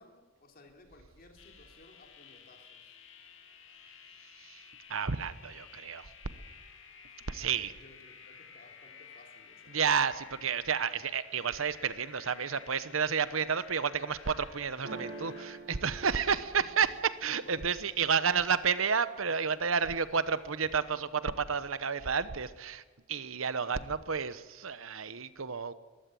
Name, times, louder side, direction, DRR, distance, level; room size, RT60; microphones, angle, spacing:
voice 1, 0.0-3.0 7.6-9.8 16.1-16.5 17.4-17.7 23.6-23.8, left 2 dB, 45° left, 3 dB, 3.1 m, -58 dB
sound 1, 1.4-15.6, left 6 dB, 65° left, 2.3 m, -53 dB
voice 2, 4.9-6.1 7.3-7.7 9.7-22.8 23.1-25.7, right 6 dB, 80° right, 14 dB, 1.0 m, -31 dB
sound 2, 14.8-18.7 19.2-19.8 20.1-20.8, right 3 dB, 65° right, 4.2 m, -48 dB
21.5 x 15.5 x 7.7 m, 1.4 s
head